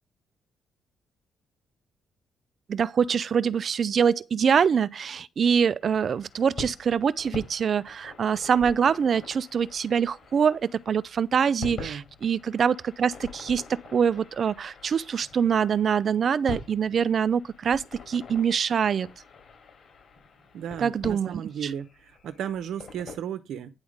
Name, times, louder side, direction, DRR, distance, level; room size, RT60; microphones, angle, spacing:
voice 1, 2.7-19.1 20.8-21.7, right 7 dB, 50° right, 0.4 m, -24 dB
sound 1, 5.8-23.2, left 4 dB, 55° left, 5.1 m, -44 dB
voice 2, 20.5-23.7, right 9 dB, 75° right, 0.8 m, -35 dB
9.7 x 3.7 x 6.4 m
cardioid pair, 90°, 0 cm